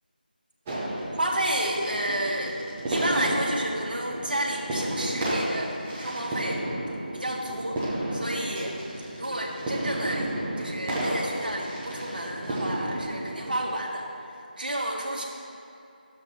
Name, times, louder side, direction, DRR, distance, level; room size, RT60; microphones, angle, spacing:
sound 1, 0.7-13.7, right 1 dB, 10° right, 0.7 m, -32 dB
voice 1, 1.1-2.6 2.9-6.6 7.1-7.8 8.1-8.8 9.2-14.1 14.6-15.2, right 1 dB, 65° right, -1 dB, 1.5 m, -30 dB
12.5 x 7.3 x 2.8 m, 2.7 s
figure-of-eight pair, 165°, 5 cm